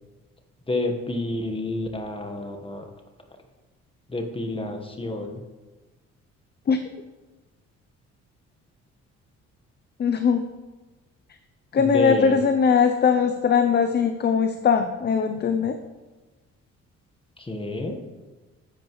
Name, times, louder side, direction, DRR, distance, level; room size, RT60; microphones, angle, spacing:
voice 1, 0.7-2.9 4.1-5.4 11.8-12.4 17.4-18.0, left 2 dB, 20° left, 4 dB, 1.3 m, -29 dB
voice 2, 10.0-10.4 11.7-15.8, left 6 dB, 35° left, 8 dB, 0.5 m, -20 dB
10.5 x 7.9 x 3.1 m, 1.2 s
cardioid pair, 90°, 30 cm